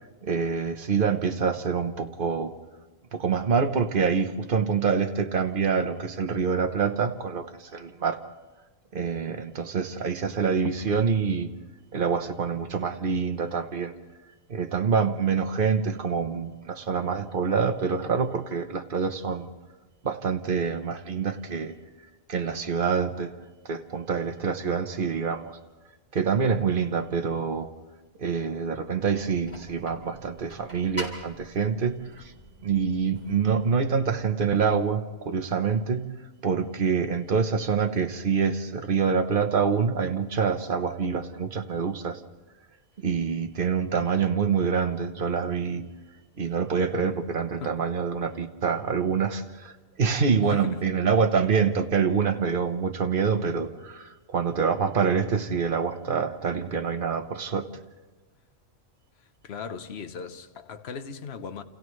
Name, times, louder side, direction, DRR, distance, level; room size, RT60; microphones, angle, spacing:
voice 1, 0.2-2.5 3.1-8.2 8.9-11.5 11.9-13.9 14.5-19.5 20.0-21.7 22.3-23.3 23.6-25.5 26.1-27.7 28.2-32.3 32.6-36.2 36.4-42.2 43.0-45.9 46.4-57.7, right 6 dB, 45° right, 1.1 m, -26 dB
sound 1, 29.1-34.1, equal, 10° left, 3.7 m, -44 dB
voice 2, 50.5-50.9 59.4-61.6, left 6 dB, 55° left, 1.2 m, -37 dB
29.0 x 28.0 x 3.2 m
omnidirectional pair, 1.4 m